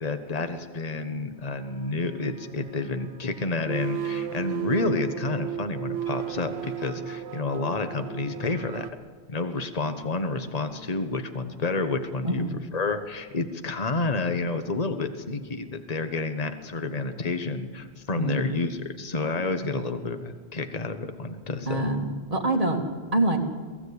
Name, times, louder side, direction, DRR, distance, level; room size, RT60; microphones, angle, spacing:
voice 1, 0.0-8.9 9.3-12.4 12.7-21.9, left 3 dB, 35° left, 8 dB, 1.3 m, -29 dB
sound 1, 1.6-8.9, right 10 dB, 90° right, 1.2 m, -35 dB
voice 2, 21.7-22.8 23.1-23.4, right 2 dB, 30° right, 1 dB, 2.4 m, -25 dB
23.0 x 15.5 x 8.4 m, 1.5 s
omnidirectional pair, 1.2 m